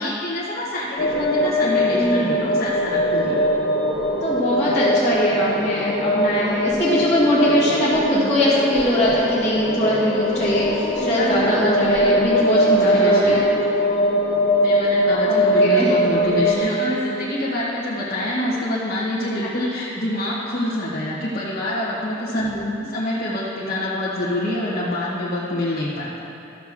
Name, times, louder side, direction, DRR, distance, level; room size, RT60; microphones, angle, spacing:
voice 1, 0.0-3.4 10.6-10.7 11.0-12.1 12.5-13.5 14.6-22.5 22.8-26.2, left 1 dB, 50° left, -9 dB, 1.3 m, -26 dB
sound 1, 1.0-16.6, equal, 85° left, 1.6 m, -21 dB
voice 2, 1.9-2.3 4.2-13.4 15.3-15.9 22.3-22.6, left 1 dB, 15° left, -15 dB, 2.0 m, -21 dB
13.0 x 6.6 x 3.6 m, 2.9 s
head